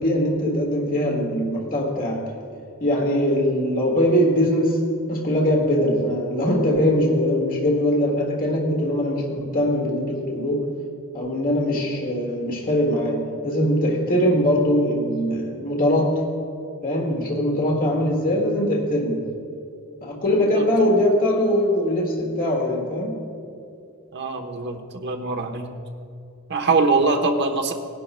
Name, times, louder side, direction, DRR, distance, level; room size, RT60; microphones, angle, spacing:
voice 1, 0.0-2.3 2.8-10.7 11.1-16.2 16.8-19.3 20.0-23.2, equal, 40° left, -1 dB, 1.8 m, -22 dB
voice 2, 24.1-25.7 26.5-27.7, right 3 dB, 50° right, 4 dB, 1.1 m, -22 dB
20.0 x 11.0 x 2.2 m, 2.5 s
head